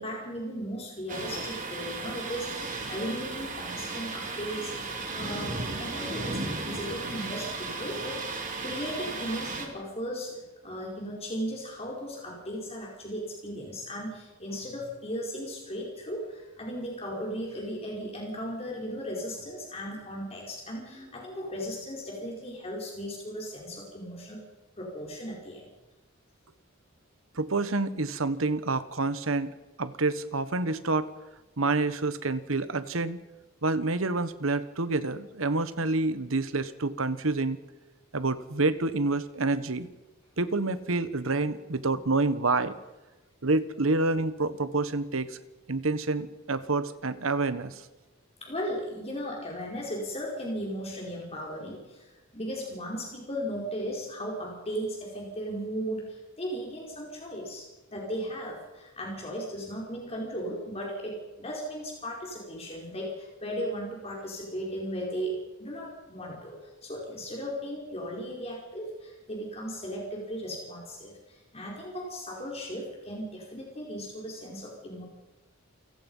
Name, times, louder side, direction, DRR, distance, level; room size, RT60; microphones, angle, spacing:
voice 1, 0.0-4.7 5.1-24.5 24.8-25.7 48.4-57.7 57.9-75.1, equal, 30° left, -2 dB, 4.9 m, -36 dB
Thunder, 1.1-9.7, right 3 dB, 40° right, 3.5 m, -35 dB
voice 2, 27.4-29.5 29.8-31.1 31.6-33.2 33.6-37.6 38.1-39.9 40.4-42.8 43.4-45.4 45.7-47.8, right 3 dB, 85° right, 13 dB, 1.3 m, -28 dB
28.5 x 17.0 x 5.6 m, 1.1 s
head